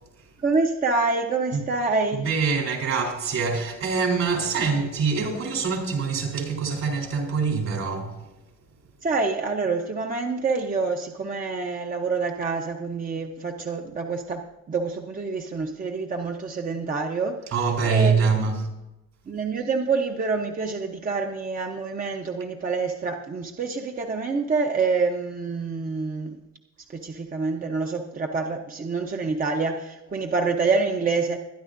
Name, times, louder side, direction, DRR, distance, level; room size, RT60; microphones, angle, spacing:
voice 1, 0.4-2.3 9.0-17.5 17.9-18.6 19.3-26.4 26.9-31.4, right 4 dB, 30° right, 0.9 m, -27 dB
voice 2, 2.2-8.2 17.5-18.6, right 5 dB, 60° right, 3.7 m, -24 dB
22.5 x 10.5 x 2.6 m
cardioid pair, 150°, 29 cm